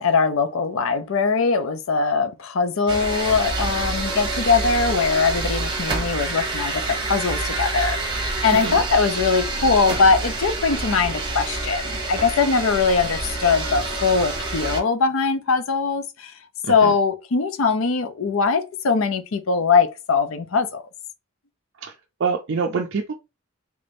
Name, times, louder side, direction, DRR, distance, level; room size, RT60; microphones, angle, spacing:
voice 1, 0.0-16.3 16.7-20.8, left 4 dB, 70° left, 0.5 m, -21 dB
sound 1, 2.9-14.8, right 2 dB, 20° right, 1.0 m, -27 dB
voice 2, 22.2-23.1, right 5 dB, 55° right, 0.4 m, -25 dB
3.3 x 2.6 x 3.4 m
head